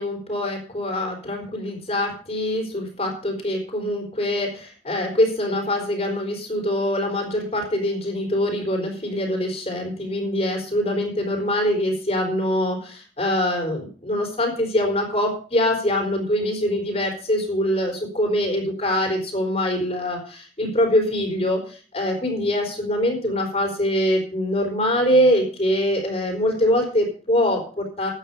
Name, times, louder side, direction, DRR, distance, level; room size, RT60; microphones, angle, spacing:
voice 1, 0.0-28.1, left 1 dB, 35° left, 2 dB, 4.1 m, -23 dB
13.0 x 9.2 x 5.5 m, 0.41 s
head